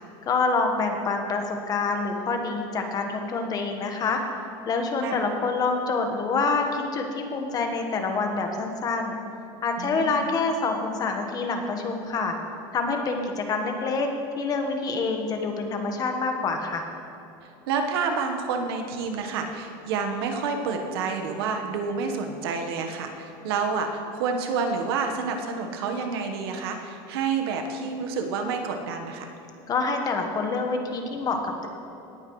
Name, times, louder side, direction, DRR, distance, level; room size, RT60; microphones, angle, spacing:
voice 1, 0.2-4.2 4.7-9.2 9.6-12.3 12.7-14.1 14.3-16.8 29.7-31.7, left 4 dB, 30° left, 4 dB, 1.3 m, -26 dB
voice 2, 9.8-10.3 17.7-29.3, right 5 dB, 90° right, 4 dB, 1.3 m, -29 dB
18.0 x 9.0 x 3.2 m, 2.9 s
supercardioid pair, 140°, 13 cm